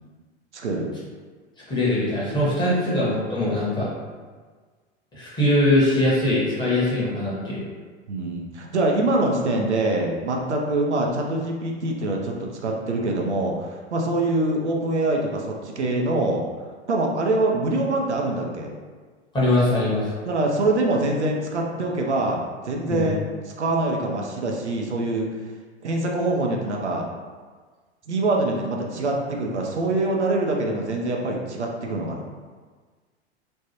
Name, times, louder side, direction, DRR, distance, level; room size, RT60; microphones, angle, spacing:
voice 1, 0.5-0.9 2.7-2.9 8.1-16.4 16.9-18.7 20.2-25.3 25.8-27.1 28.1-32.3, right 2 dB, 80° right, 0 dB, 0.5 m, -24 dB
voice 2, 1.7-3.9 5.1-7.6 19.3-20.1 22.9-23.1, left 1 dB, 15° left, -8 dB, 1.0 m, -22 dB
3.2 x 2.2 x 2.8 m, 1.5 s
figure-of-eight pair, 90°, 34 cm